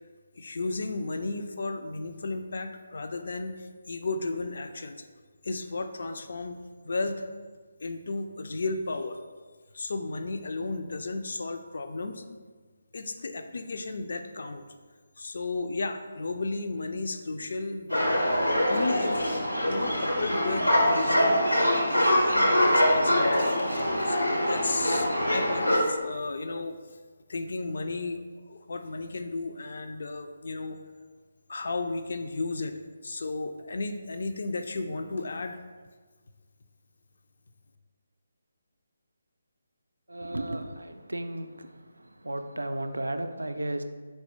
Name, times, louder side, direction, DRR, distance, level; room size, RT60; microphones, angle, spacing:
voice 1, 0.4-5.1 5.4-6.6 6.8-7.2 7.8-9.2 9.7-12.2 12.9-14.6 15.2-18.2 18.7-19.2 19.7-26.8 27.3-30.8 31.5-32.7 33.0-35.6, left 3 dB, 50° left, 6 dB, 0.3 m, -34 dB
sound 1, 17.9-25.8, equal, 90° left, 0.9 m, -24 dB
voice 2, 40.1-41.7 42.2-43.8, right 1 dB, 70° right, 8 dB, 0.3 m, -33 dB
4.4 x 4.0 x 2.8 m, 1.5 s
figure-of-eight pair, 145°, 0 cm